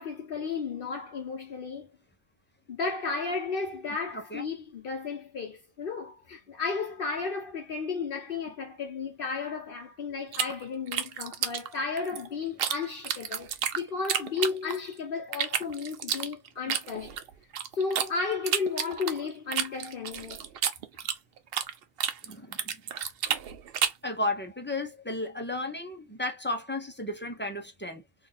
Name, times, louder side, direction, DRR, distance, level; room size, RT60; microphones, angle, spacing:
voice 1, 0.0-1.9 2.7-17.2 17.7-20.4, left 4 dB, 65° left, 0.9 m, -33 dB
sound 1, 10.3-12.8 13.0-14.9 15.3-18.1 18.5-21.7 22.0-24.1, right 8 dB, 70° right, 0.8 m, -30 dB
voice 2, 22.2-22.8 24.0-28.0, left 2 dB, 10° left, 0.6 m, -34 dB
3.1 x 2.6 x 3.8 m
omnidirectional pair, 1.0 m